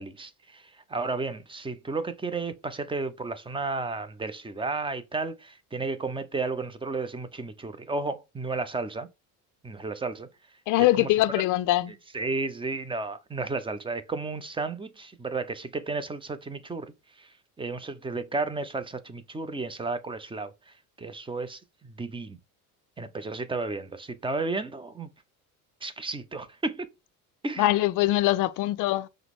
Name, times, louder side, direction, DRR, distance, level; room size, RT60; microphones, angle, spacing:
voice 1, 0.0-9.1 9.6-10.3 11.0-11.1 12.1-22.4 23.0-25.1 25.8-26.9 27.4-27.7, right 3 dB, 10° right, 0.6 m, -33 dB
voice 2, 10.7-11.9 27.6-29.1, left 16 dB, 45° left, 0.5 m, -23 dB
5.6 x 2.1 x 3.6 m
hypercardioid pair, 65°, 46 cm